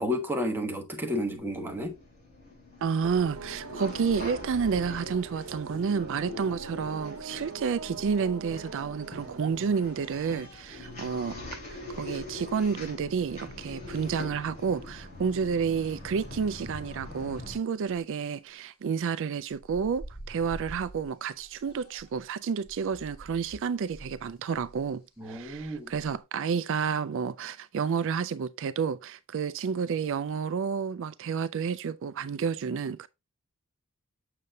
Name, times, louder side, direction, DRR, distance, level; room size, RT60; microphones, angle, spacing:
voice 1, 0.0-1.9 25.2-25.9, left 1 dB, 10° right, 1.3 m, -31 dB
sound 1, 1.4-17.6, left 2 dB, 35° left, 4.0 m, -43 dB
voice 2, 2.8-11.4 11.7-33.1, right 6 dB, 60° right, 0.4 m, -30 dB
sound 2, 3.0-10.4, right 3 dB, 85° right, 0.9 m, -43 dB
sound 3, 9.8-10.7 12.0-12.1 13.8-13.9 14.8-14.9 16.4-16.7 17.1-17.2 17.6-18.1 19.5-22.3 22.6-26.2, right 1 dB, 50° left, 4.8 m, -48 dB
6.8 x 6.6 x 2.7 m
head